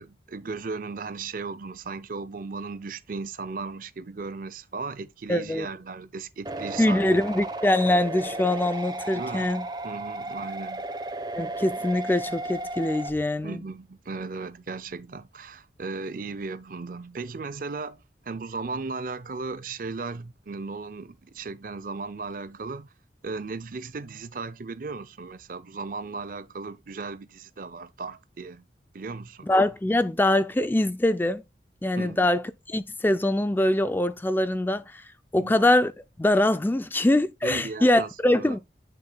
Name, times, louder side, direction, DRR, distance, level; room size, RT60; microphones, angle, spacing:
voice 1, 0.0-7.1 9.1-9.5 9.8-10.9 13.4-22.9 23.2-28.7 28.9-29.5 32.0-32.2 35.4-35.6 37.4-38.6, right 4 dB, 50° right, 0.5 m, -36 dB
voice 2, 5.3-5.7 6.8-9.7 11.4-13.6 29.5-31.4 31.8-32.4 32.7-35.0 35.3-35.9 36.2-38.6, left 1 dB, 10° left, 0.4 m, -23 dB
sound 1, 6.5-13.1, right 2 dB, 25° right, 0.9 m, -34 dB
7.9 x 6.7 x 2.2 m
head